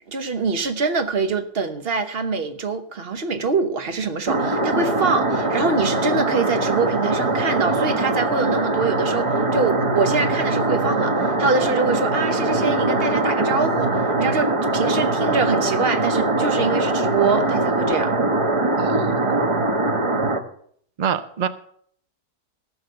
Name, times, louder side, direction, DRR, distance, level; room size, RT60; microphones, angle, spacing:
voice 1, 0.1-18.1, right 4 dB, 45° right, 1.0 m, -24 dB
sound 1, 4.3-20.4, right 2 dB, 25° right, 0.8 m, -22 dB
voice 2, 18.8-19.8 21.0-21.5, right 8 dB, 75° right, 0.4 m, -27 dB
15.0 x 6.4 x 6.7 m
omnidirectional pair, 1.7 m